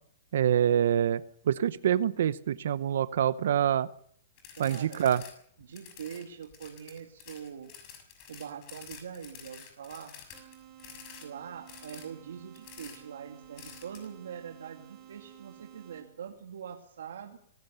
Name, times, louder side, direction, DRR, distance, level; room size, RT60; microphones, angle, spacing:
voice 1, 0.3-1.2 1.5-3.9 4.6-5.2, right 9 dB, 70° right, 15 dB, 0.8 m, -25 dB
sound 1, 4.4-5.3 5.6-11.3 11.7-12.0 12.5-13.0 13.6-14.1, left 8 dB, 35° left, 6.4 m, -49 dB
voice 2, 4.6-5.0 5.6-7.7 8.3-10.1 11.2-17.4, right 8 dB, 85° right, 2 dB, 2.4 m, -43 dB
sound 2, 10.3-16.3, right 11 dB, 25° right, 4.2 m, -53 dB
25.5 x 16.5 x 6.9 m, 0.65 s
hypercardioid pair, 160°, 0 cm